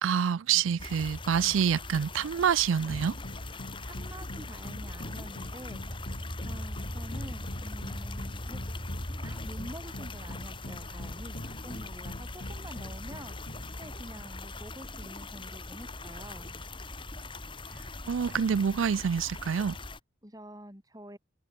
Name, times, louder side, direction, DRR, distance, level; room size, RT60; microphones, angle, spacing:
voice 1, 0.0-3.1 18.1-19.8, right 7 dB, 85° right, 0.4 m, -27 dB
sound 1, 0.8-20.0, left 2 dB, 25° left, 5.3 m, -41 dB
sound 2, 2.9-14.4, left 1 dB, 50° left, 1.9 m, -42 dB
voice 2, 3.5-5.8 6.4-8.6 9.2-13.5 13.8-16.6 20.2-21.2, right 1 dB, 20° right, 7.9 m, -47 dB
head